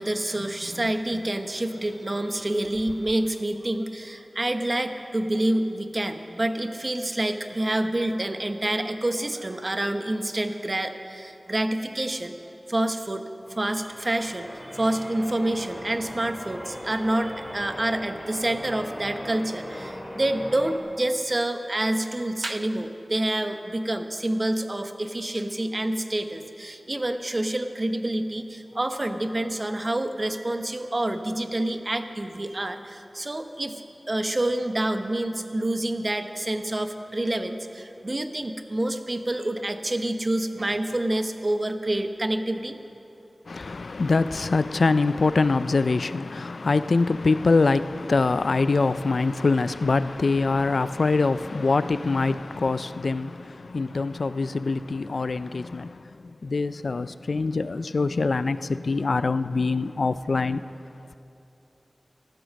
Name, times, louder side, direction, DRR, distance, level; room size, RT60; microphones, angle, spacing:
voice 1, 0.0-12.4 12.7-13.3 13.6-33.8 34.1-42.8, right 1 dB, 35° right, 7 dB, 0.9 m, -27 dB
Church bell, 13.5-20.8, equal, 25° left, 2.6 m, -39 dB
voice 2, 43.5-56.0 56.4-60.6, left 3 dB, 80° left, 14 dB, 0.4 m, -24 dB
14.5 x 13.0 x 6.4 m, 2.8 s
wide cardioid pair, 70°, 0 cm